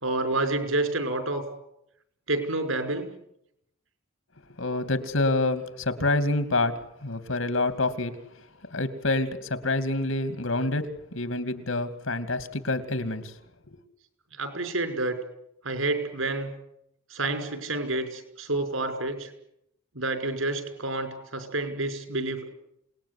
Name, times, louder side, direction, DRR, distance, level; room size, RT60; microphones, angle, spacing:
voice 1, 0.0-1.5 2.3-3.1 14.4-15.2 15.6-16.5 17.1-19.3 20.0-22.5, right 2 dB, 80° right, 8 dB, 5.6 m, -29 dB
voice 2, 4.6-8.1 8.7-13.3 13.7-13.8, left 2 dB, 80° left, 11 dB, 2.7 m, -27 dB
27.5 x 20.0 x 9.8 m, 0.80 s
head